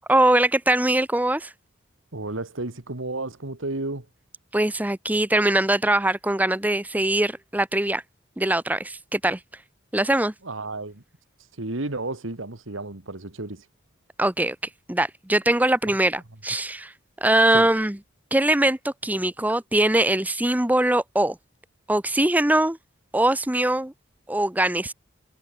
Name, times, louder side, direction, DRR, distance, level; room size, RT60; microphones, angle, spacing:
voice 1, 0.1-1.5 4.5-8.0 8.4-9.4 9.9-10.3 14.2-14.6 14.9-16.9 17.2-18.0 18.3-21.4 21.9-22.8 23.1-23.9 24.3-24.9, right 1 dB, 10° right, 0.8 m, -22 dB
voice 2, 2.1-4.1 10.4-11.0 11.6-13.6 17.5-17.7, right 2 dB, 85° right, 2.2 m, -32 dB
head